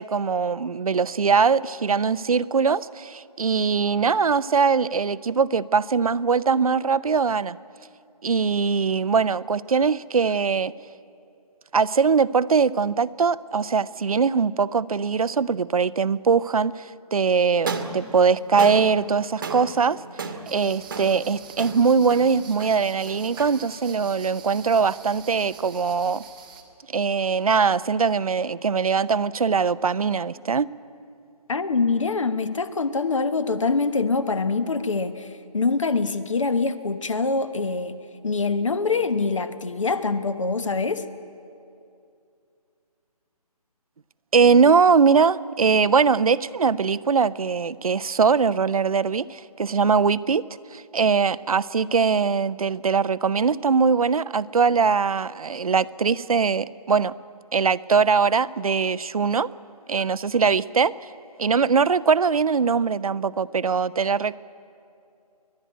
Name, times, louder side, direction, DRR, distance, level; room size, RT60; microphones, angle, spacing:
voice 1, 0.0-7.6 8.2-10.7 11.7-16.9 17.1-20.0 20.5-26.2 26.9-30.7 44.3-50.4 50.7-57.1 57.5-59.5 59.9-60.9 61.4-64.4, right 5 dB, 65° right, 17 dB, 0.6 m, -21 dB
sound 1, 17.5-25.8, right 4 dB, 30° right, 1.2 m, -36 dB
sound 2, 20.5-26.6, right 6 dB, 10° right, 0.9 m, -45 dB
voice 2, 31.5-38.0 38.2-41.1, left 4 dB, 50° left, 11 dB, 1.2 m, -24 dB
30.0 x 11.5 x 9.1 m, 2.5 s
hypercardioid pair, 170°, 20 cm